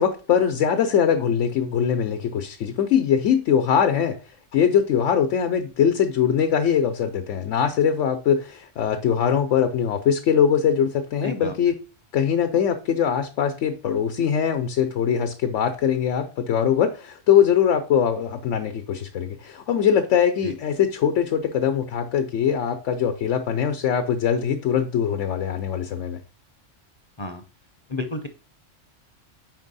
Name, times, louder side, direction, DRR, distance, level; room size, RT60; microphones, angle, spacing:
voice 1, 0.0-4.2 4.5-11.8 12.1-26.2, left 8 dB, 80° left, 1.0 m, -22 dB
voice 2, 11.2-11.5 20.4-20.5 27.2-27.4 27.9-28.3, left 3 dB, 35° left, 0.5 m, -30 dB
5.2 x 4.5 x 4.0 m
omnidirectional pair, 1.2 m